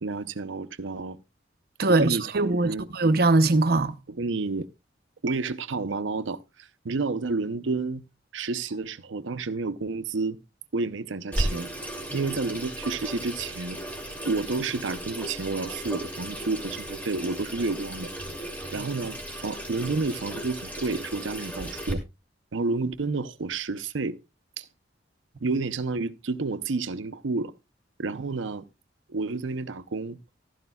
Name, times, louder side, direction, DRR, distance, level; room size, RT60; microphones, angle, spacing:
voice 1, 0.0-1.2 1.9-2.9 4.1-4.7 5.2-8.0 8.3-10.4 10.7-11.7 12.1-13.8 14.3-18.1 18.7-22.0 22.5-24.2 24.6-24.7 25.4-27.5 28.0-28.6 29.1-30.2, right 3 dB, 90° right, 0.7 m, -30 dB
voice 2, 1.8-3.9 12.1-12.2 18.8-18.9, right 2 dB, 55° right, 0.7 m, -22 dB
Water tap faucet / Sink (filling or washing), 11.3-21.9, right 1 dB, 10° left, 2.5 m, -35 dB
15.0 x 12.5 x 2.3 m
head